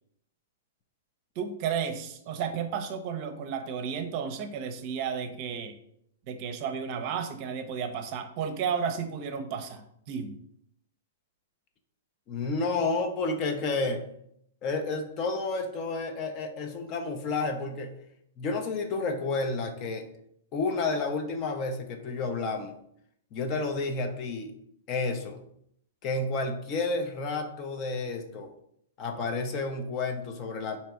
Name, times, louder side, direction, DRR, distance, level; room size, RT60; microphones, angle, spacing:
voice 1, 1.4-5.8 6.3-10.4, right 7 dB, 45° right, 7 dB, 0.6 m, -33 dB
voice 2, 12.3-14.1 14.6-18.0 18.4-20.1 20.5-22.8 23.3-24.5 24.9-25.4 26.0-28.5 29.0-30.8, left 3 dB, 35° left, 5 dB, 0.6 m, -30 dB
3.4 x 2.8 x 4.4 m, 0.72 s
hypercardioid pair, 120°, 0 cm